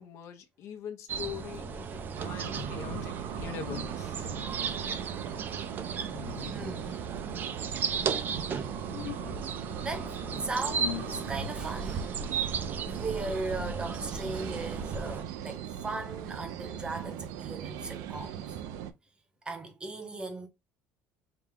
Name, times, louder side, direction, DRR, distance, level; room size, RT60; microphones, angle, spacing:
voice 1, 0.0-4.3, left 8 dB, 55° left, 0.9 m, -43 dB
sound 1, 1.1-15.2, right 6 dB, 35° right, 0.6 m, -35 dB
sound 2, 1.2-3.3 3.6-5.5 6.1-7.2 8.9-11.9, left 12 dB, 80° left, 0.5 m, -44 dB
sound 3, 2.1-18.9, right 10 dB, 80° right, 0.6 m, -40 dB
voice 2, 6.5-7.0 9.8-12.1 12.8-18.6 19.4-20.5, right 3 dB, 15° right, 1.0 m, -37 dB
4.9 x 2.3 x 3.6 m
cardioid pair, 145°, 6 cm